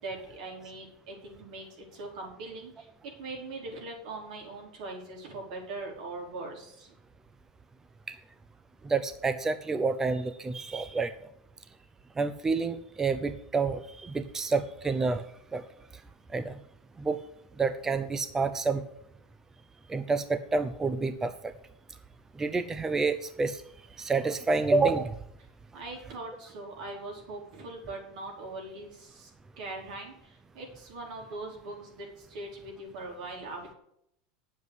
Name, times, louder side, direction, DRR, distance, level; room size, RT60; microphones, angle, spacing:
voice 1, 0.0-6.9 25.7-29.3 29.6-33.8, right 2 dB, 70° right, 1 dB, 4.6 m, -41 dB
voice 2, 8.8-11.1 12.2-15.2 15.5-15.6 16.3-16.6 17.0-17.2 17.6-18.8 19.9-21.5 22.4-23.6 24.0-25.1, right 4 dB, 10° right, 12 dB, 0.5 m, -28 dB
9.4 x 7.3 x 8.1 m, 0.76 s
supercardioid pair, 155°, 4 cm